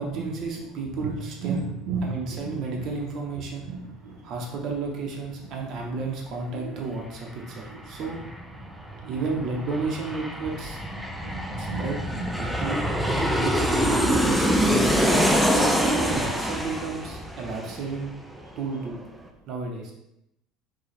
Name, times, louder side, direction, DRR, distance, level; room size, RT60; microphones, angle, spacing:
voice 1, 0.0-1.7 2.0-3.7 4.2-8.2 9.1-10.8 11.6-12.0 12.4-15.1 15.8-18.1 18.6-19.0 19.5-19.9, right 4 dB, 40° right, 0 dB, 0.8 m, -32 dB
voice 2, 1.4-2.5 3.7-4.2 6.5-6.7 7.7-7.8 9.0-9.1 10.9-11.9 12.1-12.7 13.1-13.2 13.5-13.6, right 4 dB, 75° right, 1 dB, 0.7 m, -34 dB
Aircraft, 6.8-6.9 7.1-18.5 18.8-18.9, equal, ahead, 0.3 m, -25 dB
4.9 x 2.3 x 4.2 m, 0.83 s
cardioid pair, 165°, 0 cm